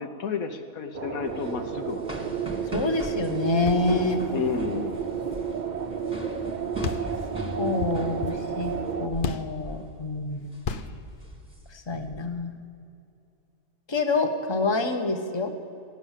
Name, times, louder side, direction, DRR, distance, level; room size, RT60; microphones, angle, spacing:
voice 1, 0.0-2.2 4.3-5.0, left 6 dB, 75° left, 4 dB, 1.3 m, -31 dB
sound 1, 0.9-9.1, right 6 dB, 45° right, 0.6 m, -31 dB
sound 2, 1.3-9.4 9.6-9.9 10.3-10.6 11.1-12.2, right 1 dB, 5° right, 1.5 m, -40 dB
voice 2, 2.7-4.2 7.6-10.5 11.7-12.5 13.9-15.5, left 3 dB, 20° left, 5 dB, 1.0 m, -27 dB
sound 3, 3.5-6.1 6.4-6.5 6.8-9.7 10.6-11.1, left 6 dB, 50° left, 0.7 m, -36 dB
15.5 x 10.0 x 7.3 m, 2.5 s
omnidirectional pair, 1.5 m